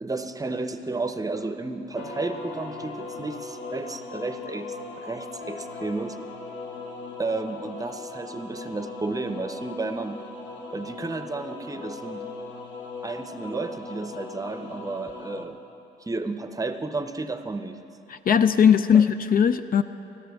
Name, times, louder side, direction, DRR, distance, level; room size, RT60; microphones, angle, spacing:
voice 1, 0.0-4.7 5.0-6.2 7.2-10.2 10.7-12.2 13.0-15.6 16.0-17.8 18.9-19.0, right 3 dB, 15° right, 8 dB, 0.7 m, -32 dB
sound 1, 1.9-15.4, left 3 dB, 65° left, 1.2 m, -39 dB
voice 2, 18.1-19.8, left 7 dB, 45° left, 11 dB, 0.4 m, -19 dB
21.0 x 13.0 x 3.5 m, 2.9 s
cardioid pair, 90°, 20 cm